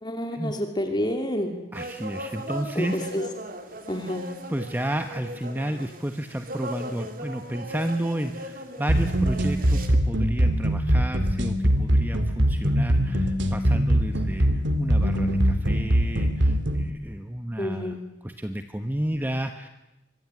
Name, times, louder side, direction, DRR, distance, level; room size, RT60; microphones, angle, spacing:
voice 1, 0.0-1.5 2.7-3.2 3.9-4.3 17.6-18.0, equal, 25° left, 4 dB, 2.8 m, -29 dB
voice 2, 1.7-3.1 4.2-17.9 18.2-19.7, right 1 dB, 10° right, 7 dB, 1.1 m, -32 dB
sound 1, 1.7-9.9, right 1 dB, 50° right, 3.2 m, -38 dB
sound 2, 8.9-16.9, equal, 80° right, 2.6 m, -22 dB
24.5 x 22.5 x 9.7 m, 1.0 s
head